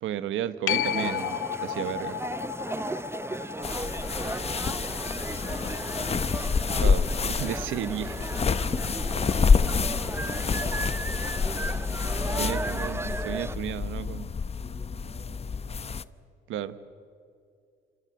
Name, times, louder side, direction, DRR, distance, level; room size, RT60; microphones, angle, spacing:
voice 1, 0.0-2.2 6.7-8.2 12.4-14.3 16.5-16.7, right 10 dB, 85° right, 13 dB, 1.3 m, -33 dB
sound 1, 0.7-7.8 13.4-13.5, left 12 dB, 80° left, 1.0 m, -35 dB
sound 2, 0.7-13.6, right 2 dB, 10° right, 0.7 m, -35 dB
voice 2, 3.4-6.3 8.2-9.1 9.7-11.7 12.1-12.6 14.5-16.0, right 2 dB, 55° right, 0 dB, 7.9 m, -49 dB
sound 3, 3.6-16.0, left 5 dB, 30° left, 0.8 m, -28 dB
28.5 x 28.0 x 6.7 m, 2.4 s
cardioid pair, 90°, 20 cm